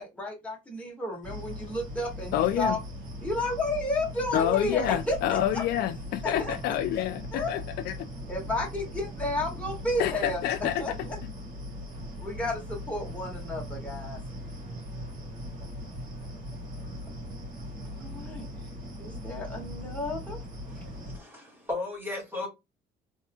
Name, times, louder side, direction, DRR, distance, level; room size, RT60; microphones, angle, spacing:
voice 1, 0.0-2.8 3.2-5.6 6.2-6.8 7.3-7.6 8.3-11.2 12.2-14.2 17.8-18.5 19.0-20.4, left 1 dB, 5° left, 2.0 m, -32 dB
sound 1, 1.2-21.2, equal, 50° right, 2.6 m, -39 dB
voice 2, 2.3-2.8 4.3-7.9 10.0-10.8, left 12 dB, 70° left, 0.4 m, -28 dB
voice 3, 20.7-22.5, left 2 dB, 10° right, 2.6 m, -36 dB
4.1 x 3.6 x 2.4 m
cardioid pair, 110°, 17 cm